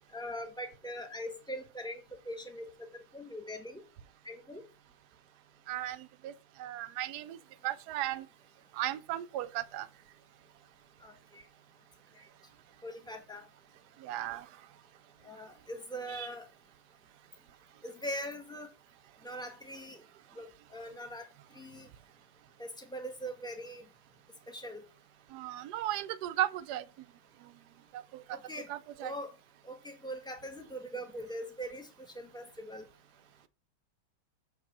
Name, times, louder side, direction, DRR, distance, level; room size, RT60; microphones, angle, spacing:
voice 1, 0.1-3.8 4.2-4.6 11.0-11.5 12.8-13.4 15.2-16.5 17.8-18.7 19.2-20.0 20.3-21.3 21.5-21.9 22.6-23.8 24.5-24.8 28.3-28.7 29.0-29.3 29.6-31.9 32.1-32.9, equal, 5° left, 0.6 m, -42 dB
voice 2, 5.7-8.3 8.7-9.9 14.0-14.5 16.1-16.3 25.3-26.9 27.4-27.5 27.9-28.4 28.7-29.1, right 13 dB, 70° right, 1.0 m, -36 dB
6.7 x 5.1 x 6.1 m
omnidirectional pair, 2.3 m